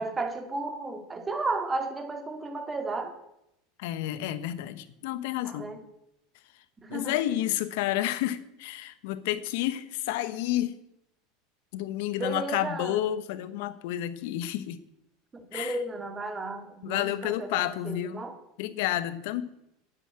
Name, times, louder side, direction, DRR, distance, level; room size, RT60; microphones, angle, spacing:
voice 1, 0.0-3.1 5.4-5.8 6.8-7.2 12.2-13.1 15.3-18.4, right 2 dB, 20° right, 6 dB, 2.3 m, -33 dB
voice 2, 3.8-5.7 6.9-10.8 11.7-14.8 15.5-15.8 16.8-18.2 18.6-19.4, left 13 dB, 70° left, 13 dB, 1.1 m, -30 dB
9.9 x 8.2 x 8.8 m, 0.82 s
hypercardioid pair, 100°, 0 cm